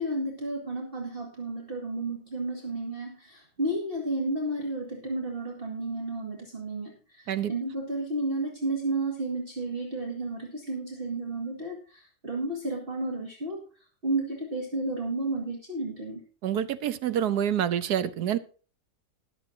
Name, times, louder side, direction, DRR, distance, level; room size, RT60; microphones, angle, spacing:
voice 1, 0.0-16.2, right 2 dB, 35° right, 2.0 m, -32 dB
voice 2, 16.4-18.4, right 10 dB, 75° right, 1.3 m, -27 dB
20.5 x 7.6 x 2.7 m
omnidirectional pair, 1.8 m